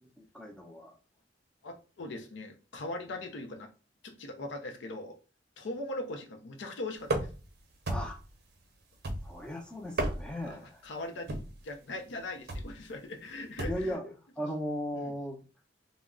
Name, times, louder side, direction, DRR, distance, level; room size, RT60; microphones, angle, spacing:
voice 1, 0.0-1.0 7.9-8.2 9.2-10.8 13.7-15.4, equal, 5° left, 0.5 m, -37 dB
voice 2, 1.6-3.7 4.0-5.1 5.6-7.3 10.4-11.4 11.6-14.0 14.9-15.1, left 2 dB, 75° left, 0.5 m, -40 dB
sound 1, 7.0-7.5 7.9-8.3 9.0-9.5 9.8-10.5 11.3-11.6 12.5-12.8 13.6-13.9, right 1 dB, 60° right, 0.6 m, -33 dB
2.3 x 2.1 x 3.6 m
head